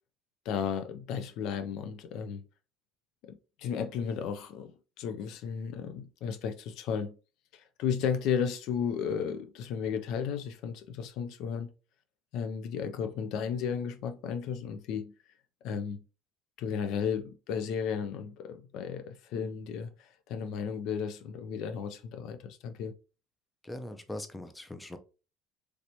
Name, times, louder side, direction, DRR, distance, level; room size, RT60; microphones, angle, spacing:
voice 1, 0.5-2.4 3.2-4.7 5.0-7.1 7.5-11.7 12.3-15.1 15.6-16.0 16.6-22.9, left 7 dB, 65° left, 0.4 m, -34 dB
voice 2, 23.6-25.0, left 1 dB, 10° left, 0.5 m, -41 dB
3.2 x 2.9 x 2.6 m
cardioid pair, 115°, 0 cm